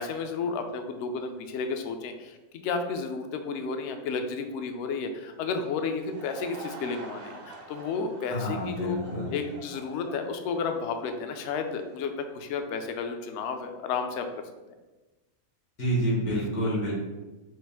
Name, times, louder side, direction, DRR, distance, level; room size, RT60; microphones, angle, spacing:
voice 1, 0.0-9.0 9.3-14.2, left 5 dB, 65° left, 6 dB, 0.7 m, -32 dB
Laughter / Crowd, 5.7-12.0, right 3 dB, 55° right, 0.6 m, -46 dB
voice 2, 8.3-9.3 15.8-16.9, equal, 90° left, -6 dB, 2.2 m, -28 dB
6.2 x 2.4 x 3.5 m, 1.2 s
omnidirectional pair, 1.5 m